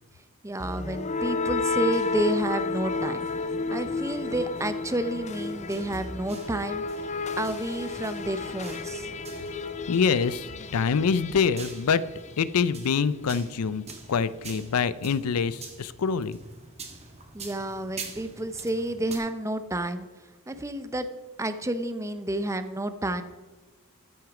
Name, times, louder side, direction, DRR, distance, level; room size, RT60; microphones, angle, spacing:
voice 1, 0.4-3.2 3.7-7.1 7.4-9.1 17.3-20.1 20.5-21.1 21.4-23.2, right 1 dB, 15° right, 10 dB, 0.6 m, -30 dB
sound 1, 0.6-12.5, left 3 dB, 30° left, 0.5 m, -32 dB
sound 2, 4.2-19.2, right 4 dB, 30° right, 1.5 m, -46 dB
voice 2, 9.9-12.0 12.4-16.4, left 6 dB, 85° left, 16 dB, 0.5 m, -25 dB
13.5 x 6.3 x 4.9 m, 1.3 s
head